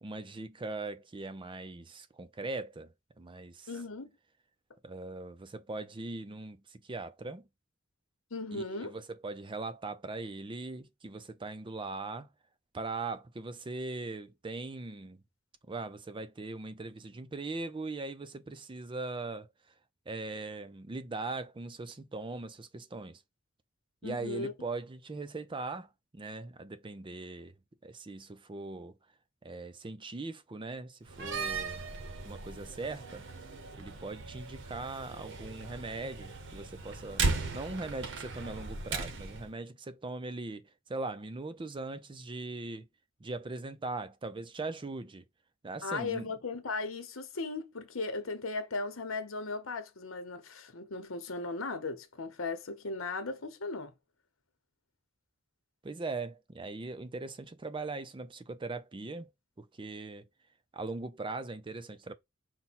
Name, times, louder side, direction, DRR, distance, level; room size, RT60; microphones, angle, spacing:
voice 1, 0.0-3.7 4.8-7.4 8.5-12.3 12.7-15.2 15.7-19.5 20.1-23.2 24.0-25.9 26.1-27.5 27.8-28.9 29.4-31.8 32.2-33.3 33.7-37.3 37.5-42.9 43.2-45.2 45.6-46.3 55.8-59.3 59.6-60.3 60.7-62.1, right 3 dB, 25° right, 0.5 m, -40 dB
voice 2, 3.7-4.1 8.3-8.9 24.0-24.5 45.8-53.9, left 3 dB, 85° left, 1.0 m, -37 dB
Slam, 31.1-39.5, right 3 dB, 65° right, 0.8 m, -37 dB
5.6 x 2.2 x 4.1 m
head